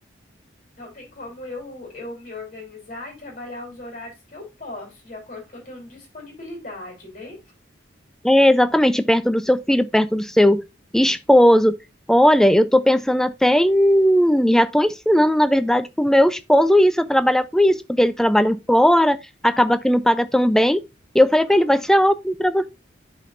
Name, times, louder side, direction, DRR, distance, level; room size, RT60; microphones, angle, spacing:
voice 1, 0.8-7.4 17.7-17.8 21.5-21.7, left 2 dB, 40° left, 3.2 m, -38 dB
voice 2, 8.2-10.6 10.9-11.8 12.1-19.2 19.4-20.8 21.1-22.7, equal, 5° left, 0.3 m, -17 dB
12.5 x 4.2 x 2.4 m
head